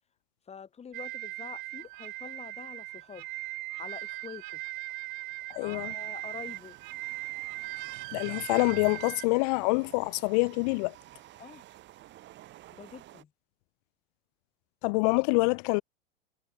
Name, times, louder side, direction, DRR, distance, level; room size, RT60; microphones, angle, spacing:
voice 1, 0.5-3.3 3.8-4.6 5.6-6.8 11.4-11.6 12.7-13.3, left 7 dB, 20° left, 4.0 m, -46 dB
sound 1, 0.9-9.3, right 21 dB, 55° right, 4.4 m, -39 dB
sound 2, 1.8-13.2, right 15 dB, 35° right, 7.5 m, -55 dB
voice 2, 5.5-5.9 8.1-10.9 14.8-15.8, left 31 dB, 40° left, 0.6 m, -26 dB
figure-of-eight pair, 90°, 30 cm